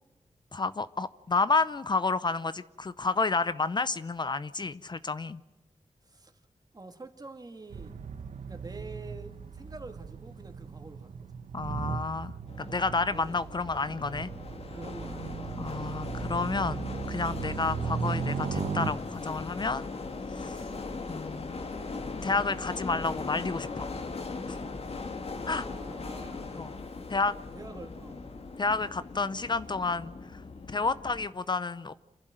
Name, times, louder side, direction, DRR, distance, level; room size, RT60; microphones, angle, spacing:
voice 1, 0.5-5.4 11.5-14.3 15.6-19.9 20.3-20.6 21.1-21.6 22.2-23.9 24.5-24.6 25.5-25.7 26.5-26.7 27.1-27.4 28.6-30.4 30.7-31.9, left 3 dB, 40° left, 15 dB, 0.6 m, -30 dB
voice 2, 6.0-6.3 6.7-7.9 8.4-11.3 13.1-13.4 14.7-15.4 25.5-26.7 27.5-28.2 30.9-31.1, right 3 dB, 35° right, 6 dB, 2.4 m, -47 dB
sound 1, 7.7-18.9, right 6 dB, 85° right, 1.2 m, -37 dB
sound 2, 12.5-31.3, left 3 dB, 60° left, 2.0 m, -39 dB
27.0 x 11.5 x 9.1 m, 1.1 s
wide cardioid pair, 85°, 12 cm